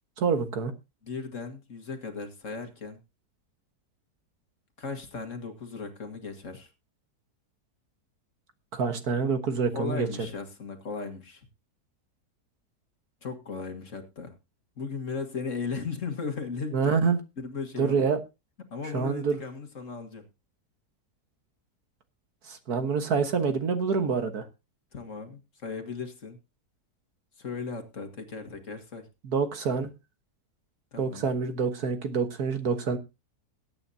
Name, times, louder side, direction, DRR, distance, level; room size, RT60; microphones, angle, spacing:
voice 1, 0.2-0.7 8.7-10.1 16.7-17.2 17.8-18.2 18.9-19.4 22.5-24.4 29.2-29.9 31.0-33.0, right 5 dB, 60° right, 7 dB, 1.8 m, -26 dB
voice 2, 1.0-3.0 4.8-6.7 9.7-11.4 13.2-14.3 14.8-17.0 17.4-18.1 18.7-20.2 24.9-26.4 27.4-29.1 30.9-31.3, left 4 dB, 50° left, 6 dB, 1.9 m, -36 dB
20.5 x 8.9 x 2.8 m, 0.27 s
omnidirectional pair, 1.8 m